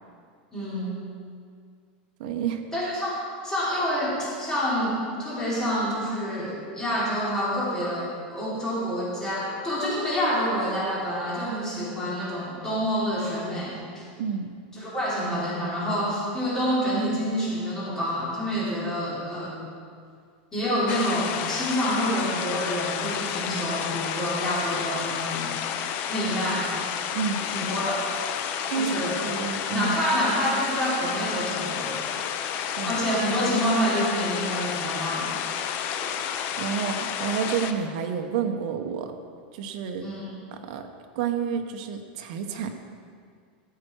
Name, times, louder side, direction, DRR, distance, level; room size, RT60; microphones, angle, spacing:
voice 1, 0.5-1.0 2.7-3.2 3.4-14.0 14.7-19.6 20.5-25.5 26.1-26.7 27.5-28.0 28.7-29.2 29.7-32.0 32.8-35.7 40.0-40.4, equal, 10° left, -8 dB, 3.5 m, -27 dB
voice 2, 2.2-2.6 14.2-14.5 27.1-27.4 28.7-30.0 32.7-33.0 36.6-39.1 39.5-40.1 40.5-40.8 41.1-42.7, right 7 dB, 55° right, 5 dB, 1.1 m, -29 dB
sound 1, 20.9-37.7, left 8 dB, 40° left, 0.6 m, -31 dB
14.5 x 7.8 x 4.7 m, 2.1 s
supercardioid pair, 165°, 5 cm